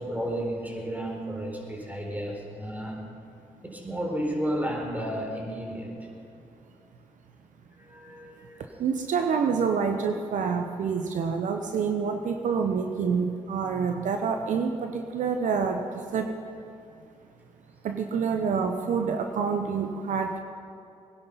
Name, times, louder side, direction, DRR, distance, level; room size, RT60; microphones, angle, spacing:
voice 1, 0.0-3.0 3.6-5.9 7.7-8.6, equal, 10° right, 0 dB, 4.2 m, -32 dB
voice 2, 8.8-16.3 17.8-20.4, right 6 dB, 70° right, 5 dB, 0.9 m, -27 dB
19.0 x 11.0 x 5.6 m, 2.6 s
supercardioid pair, 45°, 14 cm